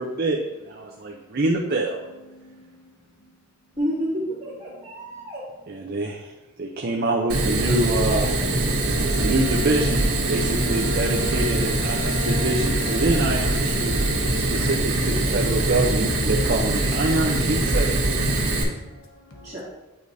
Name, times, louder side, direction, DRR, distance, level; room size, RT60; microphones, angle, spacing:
voice 1, 0.0-2.0 5.7-6.3 6.6-8.5 9.2-14.0 14.4-18.1, right 2 dB, 45° right, 0 dB, 0.5 m, -26 dB
voice 2, 2.3-2.8 17.6-17.7 18.4-19.5, left 1 dB, 75° left, 0 dB, 1.1 m, -49 dB
voice 3, 3.8-5.5 19.4-19.6, equal, 15° right, -14 dB, 2.0 m, -29 dB
Fire, 7.3-18.6, right 2 dB, 80° right, 1.5 m, -23 dB
Bowed string instrument, 8.7-14.8, left 5 dB, 15° left, 0.4 m, -37 dB
8.7 x 4.8 x 2.7 m, 1.1 s
head